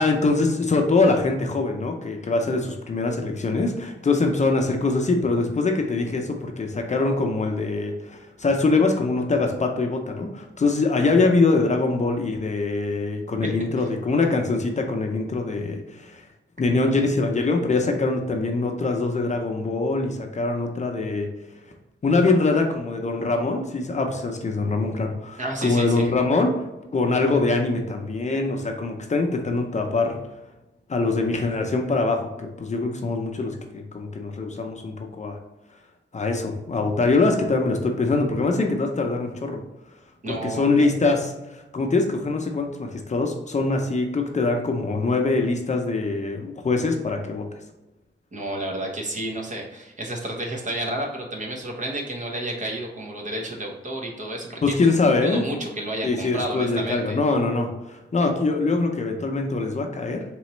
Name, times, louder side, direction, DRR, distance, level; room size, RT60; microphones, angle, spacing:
voice 1, 0.0-16.2 16.6-21.3 22.0-26.7 26.9-30.2 30.9-35.4 36.1-39.6 40.3-47.5 54.6-55.4 56.0-60.2, left 3 dB, 35° left, 3 dB, 0.6 m, -23 dB
voice 2, 25.4-26.1 40.2-40.7 48.3-54.7 55.2-57.2, right 1 dB, 40° right, 0 dB, 0.9 m, -31 dB
4.1 x 3.0 x 3.0 m, 1.0 s
wide cardioid pair, 100°, 20 cm